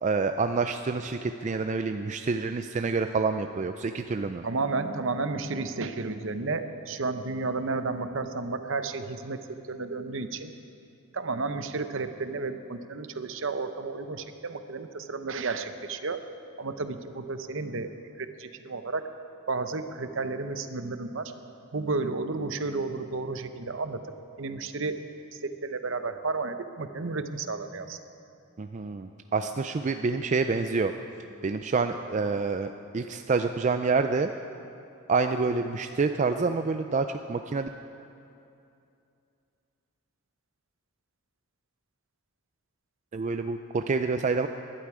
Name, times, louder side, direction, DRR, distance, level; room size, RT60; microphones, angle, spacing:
voice 1, 0.0-4.4 28.6-30.9 31.4-34.3 35.1-37.7 43.1-44.5, right 4 dB, 35° right, 7 dB, 0.3 m, -27 dB
voice 2, 4.4-10.5 11.1-16.2 16.6-17.9 18.2-19.1 19.5-21.3 21.7-24.0 24.4-25.0 25.6-28.0, right 3 dB, 60° right, 9 dB, 0.8 m, -32 dB
20.5 x 11.5 x 4.9 m, 2.6 s
head